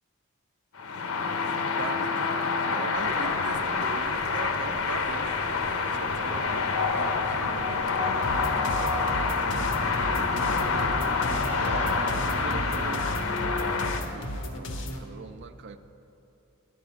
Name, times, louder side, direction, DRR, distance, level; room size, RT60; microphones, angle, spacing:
sound 1, 0.7-14.0, left 4 dB, 85° left, 0.7 m, -27 dB
voice 1, 1.8-10.9 11.6-15.8, right 5 dB, 55° right, 8 dB, 0.4 m, -42 dB
sound 2, 2.9-13.0, equal, 30° left, 2.3 m, -38 dB
sound 3, 8.2-15.0, left 1 dB, 60° left, 1.1 m, -35 dB
11.0 x 5.6 x 8.6 m, 2.9 s
head